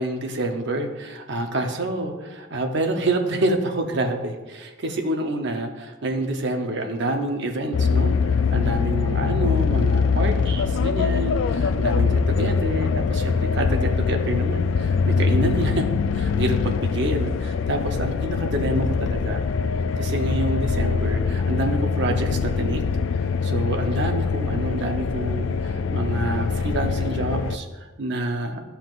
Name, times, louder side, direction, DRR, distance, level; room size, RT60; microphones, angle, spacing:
voice 1, 0.0-15.9 16.1-19.4 20.0-22.8 23.4-28.6, right 1 dB, 55° right, 4 dB, 0.8 m, -27 dB
sound 1, 7.7-27.6, left 5 dB, 70° left, 0.3 m, -23 dB
12.0 x 5.7 x 2.5 m, 1.2 s
head